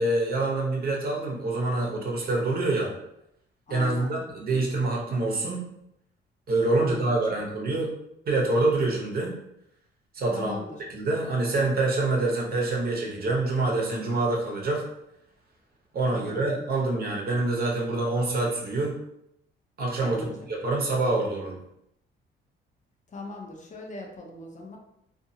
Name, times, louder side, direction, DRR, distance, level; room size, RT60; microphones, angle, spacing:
voice 1, 0.0-2.9 3.7-5.7 6.5-7.9 8.3-9.3 10.1-10.5 10.9-14.8 15.9-19.0 19.8-21.6, right 2 dB, 50° right, -1 dB, 0.8 m, -26 dB
voice 2, 3.7-4.1 4.5-4.7 6.7-7.1 10.3-10.8 16.1-16.7 20.0-20.5 23.1-24.8, left 2 dB, 40° left, 1 dB, 0.6 m, -40 dB
2.7 x 2.5 x 2.7 m, 0.80 s
cardioid pair, 90°, 20 cm